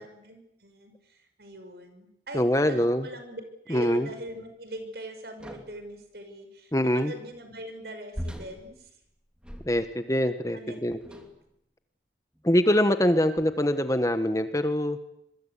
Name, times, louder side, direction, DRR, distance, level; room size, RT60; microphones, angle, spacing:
voice 1, 0.0-8.9 10.5-10.8 11.1-11.2, right 1 dB, 65° right, 7 dB, 5.8 m, -41 dB
voice 2, 2.3-3.0 3.7-4.1 6.7-7.1 9.7-11.0 12.4-15.0, equal, 20° left, 9 dB, 1.3 m, -24 dB
sound 1, 5.4-5.9 8.1-10.1 11.0-11.5 12.3-12.5 13.4-13.8, equal, 5° right, 2.9 m, -41 dB
26.0 x 23.0 x 8.4 m, 0.78 s
head